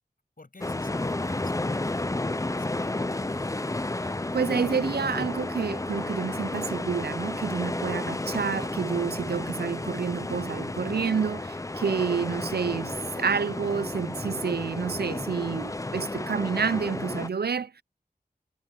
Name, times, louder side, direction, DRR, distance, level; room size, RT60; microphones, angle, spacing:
voice 1, 0.4-3.5, left 2 dB, 60° left, 7.3 m, -50 dB
sound 1, 0.6-17.3, left 2 dB, 20° left, 0.5 m, -32 dB
voice 2, 4.0-17.8, right 6 dB, 85° right, 0.5 m, -29 dB
wide cardioid pair, 60°, 16 cm